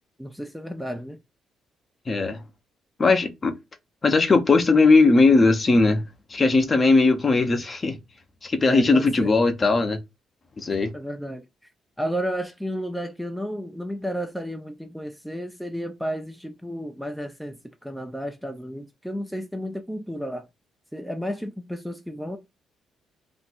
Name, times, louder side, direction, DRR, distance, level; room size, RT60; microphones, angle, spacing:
voice 1, 0.2-1.2 8.6-9.3 10.9-11.5 12.0-20.5 20.9-22.4, equal, ahead, 0.4 m, -32 dB
voice 2, 2.1-2.4 3.0-3.5 4.0-6.0 6.3-8.0 8.4-10.0 10.6-10.9, left 3 dB, 35° left, 0.7 m, -19 dB
2.6 x 2.2 x 4.1 m
cardioid pair, 90°, 0 cm